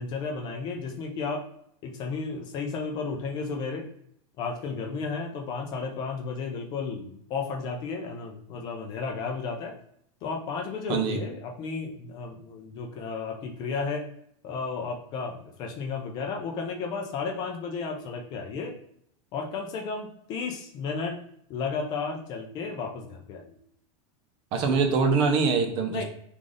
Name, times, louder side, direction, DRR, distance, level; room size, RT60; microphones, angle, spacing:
voice 1, 0.0-1.5 1.8-3.9 4.4-9.7 10.2-14.1 14.4-18.7 19.3-21.2 21.5-23.6 25.9-26.0, left 4 dB, 25° left, 1 dB, 0.5 m, -33 dB
voice 2, 24.5-26.0, right 4 dB, 30° right, 6 dB, 0.5 m, -24 dB
3.2 x 2.5 x 3.8 m, 0.68 s
supercardioid pair, 170°, 17 cm